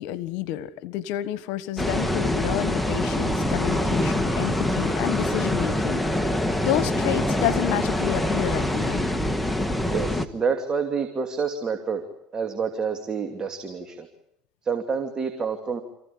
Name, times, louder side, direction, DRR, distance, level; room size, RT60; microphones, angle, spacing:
voice 1, 0.0-6.0 6.6-9.1, left 13 dB, 75° left, 15 dB, 1.4 m, -29 dB
sound 1, 1.8-10.2, left 1 dB, 5° left, 1.7 m, -25 dB
voice 2, 9.9-12.0 12.3-14.1 14.6-15.8, right 5 dB, 30° right, 5 dB, 2.7 m, -28 dB
28.0 x 16.0 x 8.7 m, 0.80 s
supercardioid pair, 100°, 2 cm